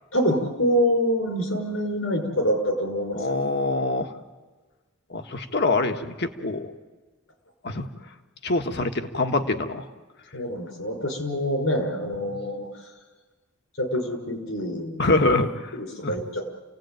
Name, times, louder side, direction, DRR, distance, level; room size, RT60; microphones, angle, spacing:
voice 1, 0.1-3.3 10.3-12.9 13.8-15.1 15.7-16.5, equal, 80° left, 4 dB, 5.4 m, -26 dB
voice 2, 3.2-4.1 5.1-6.7 7.6-7.9 8.4-9.9 15.0-15.7 16.0-16.1, left 2 dB, 55° left, 6 dB, 1.6 m, -24 dB
28.5 x 17.5 x 9.2 m, 1.3 s
head